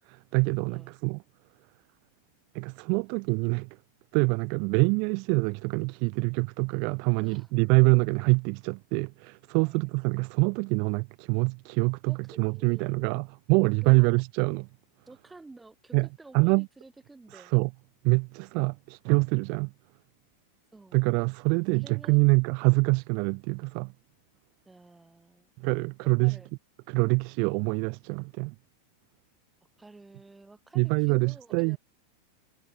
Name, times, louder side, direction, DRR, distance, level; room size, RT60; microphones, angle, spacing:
voice 1, 0.1-1.2 2.5-3.8 4.1-14.7 15.9-16.1 16.3-16.7 17.3-17.7 18.0-19.7 20.9-23.9 25.6-26.4 26.9-28.6 30.7-31.8, right 37 dB, 45° right, 0.5 m, -25 dB
voice 2, 7.2-7.5 9.6-9.9 12.1-13.1 13.8-14.2 15.1-17.5 20.7-21.0 21.7-22.3 24.6-25.5 26.0-26.5 29.8-31.8, right 3 dB, 10° right, 3.0 m, -51 dB
figure-of-eight pair, 90°, 0 cm